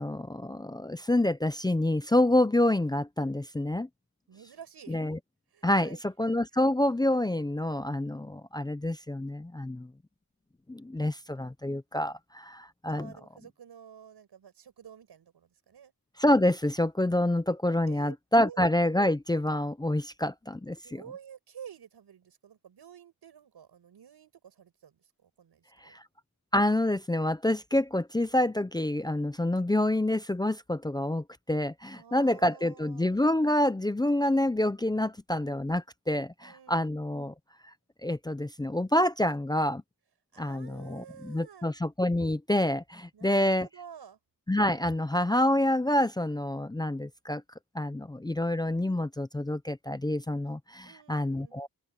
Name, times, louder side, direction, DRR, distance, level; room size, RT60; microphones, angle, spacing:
voice 1, 0.0-3.9 4.9-5.2 5.6-9.9 10.7-13.1 16.2-21.0 25.8-26.0 26.5-37.3 38.0-39.8 40.4-43.7 44.5-47.4 47.7-51.7, left 1 dB, 10° left, 0.6 m, -27 dB
voice 2, 4.3-5.0 5.5-6.0 12.9-15.9 17.9-18.6 20.8-26.0 31.9-33.2 36.4-36.9 40.3-41.7 43.1-44.2 50.8-51.6, right 8 dB, 85° right, 6.5 m, -50 dB
open air
wide cardioid pair, 145°, 38 cm